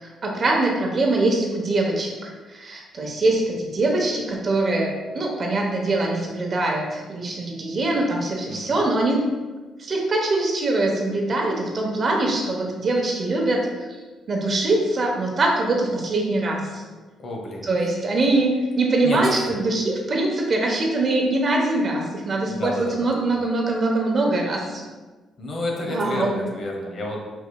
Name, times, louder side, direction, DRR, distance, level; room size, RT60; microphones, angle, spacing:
voice 1, 0.0-9.3 9.8-13.9 14.3-16.8 17.6-24.8 25.9-26.4, right 2 dB, 45° right, 0 dB, 0.9 m, -23 dB
voice 2, 8.5-8.8 17.2-17.7 19.0-19.4 22.5-23.4 25.4-27.2, left 1 dB, 55° left, 0 dB, 0.9 m, -30 dB
4.6 x 4.1 x 2.3 m, 1.3 s
cardioid pair, 90°, 0 cm